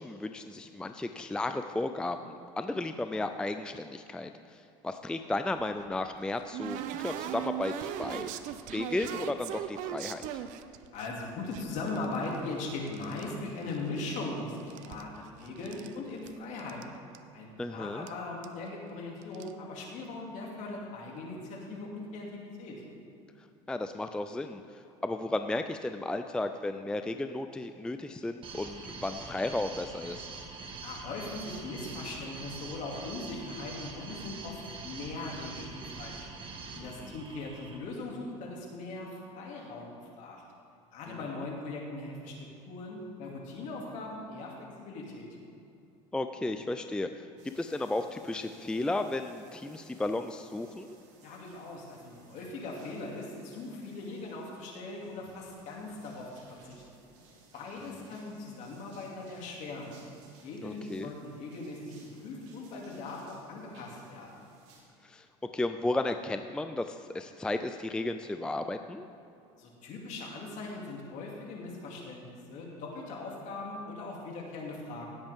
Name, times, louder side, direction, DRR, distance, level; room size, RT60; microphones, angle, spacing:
voice 1, 0.0-8.3 8.7-10.3 17.6-18.1 23.4-30.3 36.8-37.2 41.1-41.2 46.1-51.0 60.6-61.1 65.0-65.3 65.5-69.1, left 2 dB, 5° left, 8 dB, 0.4 m, -34 dB
sound 1, 5.6-11.1 11.5-13.3 13.6-14.3 14.6-15.9 16.3-16.4 16.6-16.8 17.1-17.2 18.1-18.2 18.4-18.7 19.2-19.5, right 10 dB, 65° right, 0.6 m, -39 dB
voice 2, 10.9-16.8 17.3-22.8 30.8-36.3 36.7-40.4 40.9-42.3 42.7-45.3 51.2-56.3 56.6-57.0 57.5-60.0 60.4-61.8 62.2-64.4 69.6-75.1, left 2 dB, 55° left, -1 dB, 2.6 m, -40 dB
sound 2, 28.4-37.8, right 4 dB, 40° right, 1.5 m, -44 dB
sound 3, 47.4-64.8, right 3 dB, 85° right, 2.4 m, -60 dB
17.5 x 8.0 x 3.6 m, 2.7 s
supercardioid pair, 110°, 14 cm